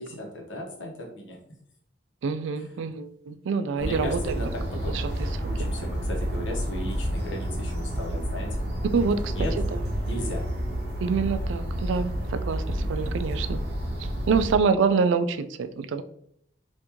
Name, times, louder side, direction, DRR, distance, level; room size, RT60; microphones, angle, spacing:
voice 1, 0.0-1.4 2.6-2.7 3.8-5.1 5.5-8.6 9.1-9.6 10.1-10.5, left 1 dB, 75° left, 0 dB, 0.9 m, -36 dB
voice 2, 2.2-4.4 4.9-5.3 8.9-9.8 11.0-13.6 14.0-16.0, right 5 dB, 75° right, 11 dB, 0.3 m, -26 dB
sound 1, 3.8-14.6, equal, 55° right, 0.7 m, -30 dB
3.5 x 2.6 x 2.9 m, 0.71 s
head